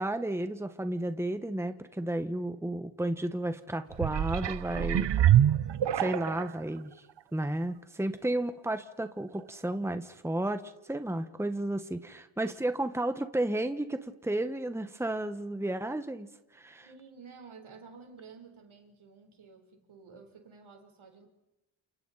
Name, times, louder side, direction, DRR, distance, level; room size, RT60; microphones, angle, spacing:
voice 1, 0.0-5.2 5.9-6.9 7.3-10.6 10.9-16.3 16.5-16.9, right 1 dB, 5° right, 9 dB, 1.4 m, -32 dB
sound 1, 3.9-6.6 7.2-7.3, right 11 dB, 60° right, 0.7 m, -25 dB
voice 2, 16.8-21.3, right 5 dB, 75° right, 4 dB, 4.2 m, -52 dB
29.5 x 28.5 x 4.2 m, 0.94 s
cardioid pair, 60°, 48 cm